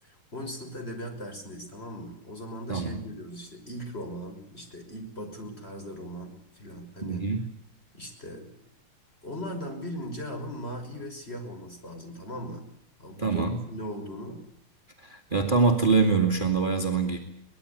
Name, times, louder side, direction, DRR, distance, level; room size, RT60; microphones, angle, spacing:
voice 1, 0.0-7.3 7.9-8.5 9.2-12.6 13.0-14.4, equal, 30° left, 4 dB, 6.1 m, -39 dB
voice 2, 2.7-3.0 7.0-7.4 13.2-13.6 15.0-17.2, right 4 dB, 25° right, 4 dB, 2.5 m, -24 dB
23.5 x 20.0 x 8.5 m, 0.74 s
omnidirectional pair, 2.2 m